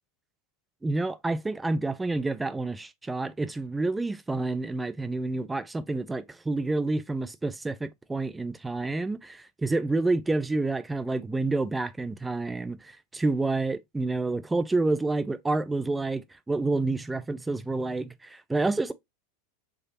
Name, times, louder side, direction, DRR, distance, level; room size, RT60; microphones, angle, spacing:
voice 1, 0.8-18.9, right 2 dB, 10° right, 0.4 m, -29 dB
4.6 x 3.1 x 2.9 m
figure-of-eight pair, 85°, 0 cm